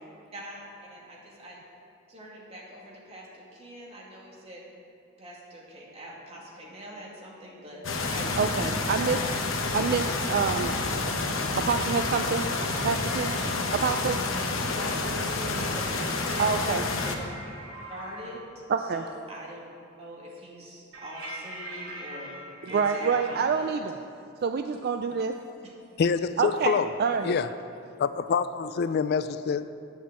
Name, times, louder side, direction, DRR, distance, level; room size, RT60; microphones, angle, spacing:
voice 1, 0.3-1.6 2.1-4.6 5.2-8.8 14.8-17.1 17.9-18.4 18.9-19.6 20.0-23.8, equal, 30° right, -4 dB, 2.3 m, -43 dB
sound 1, 7.8-17.2, left 3 dB, 80° left, 1.1 m, -29 dB
voice 2, 8.4-9.2 9.7-10.7 11.7-12.5 12.8-13.3 13.7-14.2 16.4-16.8 18.7-19.0 22.6-24.0 24.4-25.4 26.4-27.4, right 5 dB, 50° right, 7 dB, 0.4 m, -27 dB
sound 2, 11.9-13.5 15.5-18.3 20.9-23.4, right 1 dB, 75° right, 2.2 m, -42 dB
voice 3, 26.0-26.9 27.2-27.5 28.0-29.7, left 6 dB, 55° left, 13 dB, 0.3 m, -26 dB
9.3 x 7.1 x 7.5 m, 2.5 s
head